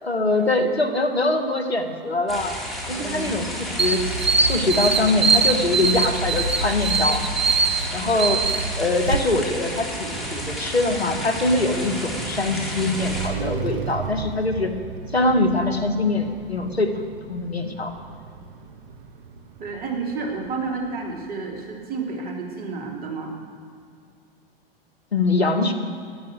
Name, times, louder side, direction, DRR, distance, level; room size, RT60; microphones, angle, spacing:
voice 1, 0.0-2.6 2.9-4.1 4.4-7.2 7.9-14.8 15.1-17.0 17.3-17.9 25.1-25.7, left 2 dB, 85° left, 6 dB, 1.9 m, -23 dB
sound 1, 2.3-13.3, equal, ahead, 3.8 m, -32 dB
voice 2, 2.9-3.5 19.6-23.3, right 4 dB, 30° right, 0 dB, 3.5 m, -31 dB
sound 2, 3.8-9.2, right 4 dB, 85° right, 1.1 m, -22 dB
Car passing by, 9.5-21.5, right 5 dB, 60° right, 1.5 m, -36 dB
14.0 x 11.5 x 8.3 m, 2.3 s
figure-of-eight pair, 100°, 30 cm